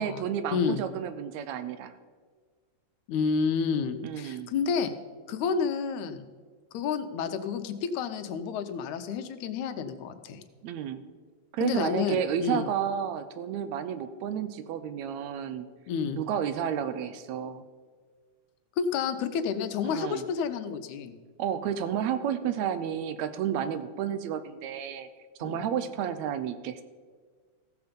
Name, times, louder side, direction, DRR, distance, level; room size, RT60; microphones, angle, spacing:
voice 1, 0.0-1.9 4.0-4.5 10.6-11.0 11.5-15.7 16.2-17.6 19.8-20.2 21.4-25.1 25.4-26.8, right 9 dB, 75° right, 11 dB, 1.8 m, -31 dB
voice 2, 0.5-0.8 3.1-4.9 5.3-6.3 6.7-10.4 11.6-12.7 15.9-16.2 18.8-21.1 25.4-25.7, left 6 dB, 80° left, 9 dB, 2.1 m, -30 dB
15.5 x 7.0 x 5.1 m, 1.5 s
omnidirectional pair, 3.4 m